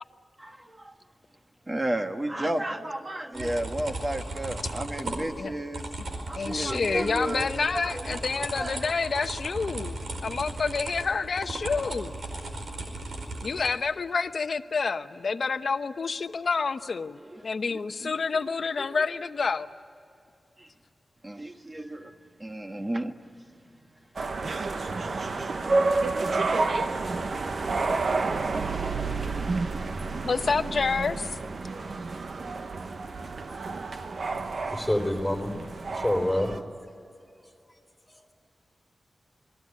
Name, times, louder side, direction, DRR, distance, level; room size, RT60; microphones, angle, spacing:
voice 1, 0.4-0.9 1.7-5.8 6.3-7.5 7.7-8.2 8.6-8.8 17.3-17.4 18.8-18.9 20.6-20.7 21.2-22.1 22.4-23.2, right 1 dB, 20° right, 5 dB, 1.6 m, -32 dB
sound 1, 3.3-13.7, right 2 dB, 80° right, 4.8 m, -36 dB
voice 2, 6.2-10.0 10.2-12.2 13.4-19.7 30.2-31.4, left 4 dB, 60° left, 10 dB, 0.9 m, -28 dB
sound 2, 24.2-36.6, right 3 dB, 60° right, 1.1 m, -30 dB
voice 3, 34.7-35.5 35.9-36.6, left 1 dB, 5° left, 3 dB, 3.8 m, -26 dB
27.5 x 21.5 x 10.0 m, 2.5 s
wide cardioid pair, 140°, 0 cm